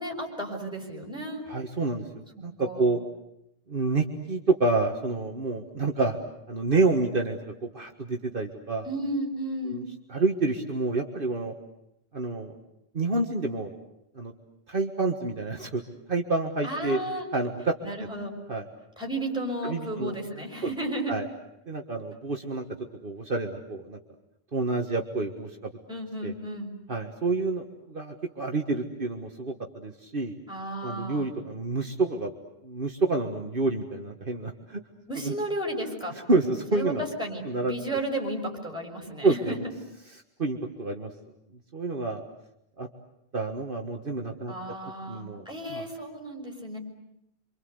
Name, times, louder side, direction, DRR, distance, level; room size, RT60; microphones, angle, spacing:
voice 1, 0.0-1.4 2.6-2.9 8.8-9.8 16.6-17.2 17.8-18.3 19.0-21.1 25.9-26.7 30.5-31.3 35.1-36.1 36.7-36.9 37.2-39.6 44.5-46.8, right 1 dB, 5° right, 1 dB, 6.5 m, -33 dB
voice 2, 1.5-3.0 3.7-6.2 6.5-8.9 9.7-9.8 10.1-11.5 12.1-12.6 12.9-13.7 14.1-14.3 14.7-15.8 16.1-17.0 17.3-17.7 18.5-18.7 19.6-20.2 20.6-20.7 21.1-21.3 21.7-22.6 23.0-24.0 24.5-25.7 26.2-26.3 26.9-30.3 30.8-32.3 32.6-34.8 35.2-35.3 36.1-37.0 37.4-37.8 39.2-39.6 40.4-41.1 41.7-42.2 42.8-42.9 43.3-44.5 45.1-45.9, right 3 dB, 55° right, 2 dB, 1.9 m, -28 dB
28.5 x 25.5 x 8.1 m, 0.80 s
omnidirectional pair, 1.1 m